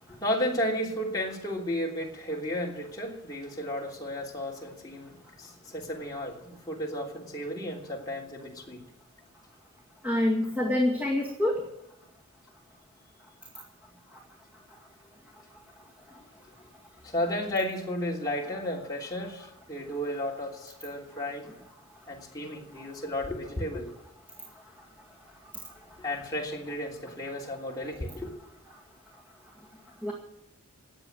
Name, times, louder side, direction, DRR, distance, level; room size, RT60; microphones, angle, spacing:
voice 1, 0.1-5.1 5.4-8.8 17.0-21.5 22.1-23.9 26.0-28.3, left 1 dB, 15° left, -3 dB, 3.2 m, -33 dB
voice 2, 10.0-11.6 30.0-30.1, left 1 dB, 5° right, -2 dB, 2.1 m, -26 dB
20.0 x 8.3 x 7.7 m, 0.87 s
head